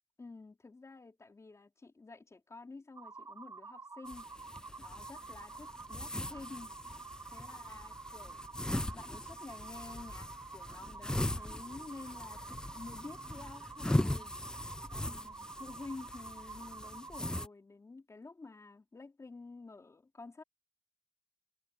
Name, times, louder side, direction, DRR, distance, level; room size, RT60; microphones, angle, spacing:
voice 1, 0.2-4.3 4.8-6.7 7.3-8.5 8.9-14.3 14.9-20.4, left 3 dB, 80° left, 4.0 m, -50 dB
sound 1, 3.0-17.5, right 4 dB, 85° right, 0.7 m, -49 dB
sound 2, 4.1-17.5, left 1 dB, 15° left, 0.3 m, -39 dB
wide cardioid pair, 70°, 5 cm